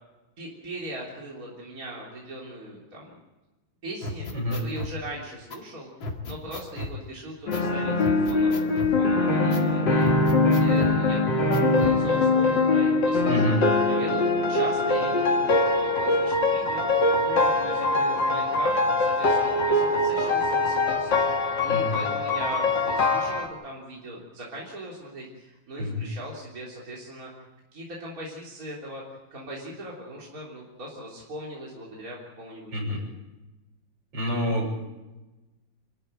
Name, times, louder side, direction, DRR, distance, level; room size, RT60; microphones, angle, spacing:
voice 1, 0.4-3.1 3.8-11.2 11.7-13.5 13.9-27.5 27.7-32.9, right 1 dB, 45° right, -4 dB, 4.0 m, -40 dB
sound 1, 4.0-4.9 5.5-5.6 6.0-7.0 7.5-7.7 8.0-9.0 9.5-9.7 10.0-11.0 11.5-12.0, left 2 dB, 85° left, 2.9 m, -35 dB
sound 2, 7.5-23.5, left 2 dB, 65° left, 2.7 m, -23 dB
voice 2, 13.3-13.6 21.7-22.0 25.8-26.0 32.7-33.0 34.1-34.7, left 1 dB, 70° right, 0 dB, 6.7 m, -27 dB
27.5 x 13.5 x 8.9 m, 1.1 s
omnidirectional pair, 2.1 m